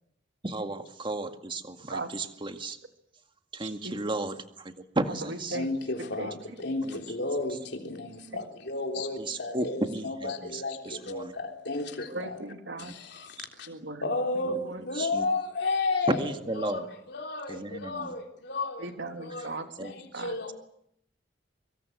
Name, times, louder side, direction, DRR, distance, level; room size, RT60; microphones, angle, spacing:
voice 1, 0.4-2.8 3.5-5.6 6.8-7.0 9.2-11.3 12.8-12.9 13.4-13.5 14.5-14.6 15.0-15.3 16.1-16.8 17.5-18.1 19.8-19.9, right 2 dB, 30° right, 2.0 m, -34 dB
voice 2, 3.6-4.0 5.2-5.7 6.2-6.3 8.3-8.4 12.1-12.9 13.7-14.1 14.5-14.8 18.8-20.3, right 2 dB, 75° right, 3.2 m, -38 dB
voice 3, 5.5-12.4 12.8-13.7 14.0-18.9 19.2-20.5, left 3 dB, 65° left, 3.5 m, -33 dB
24.5 x 24.5 x 8.0 m
head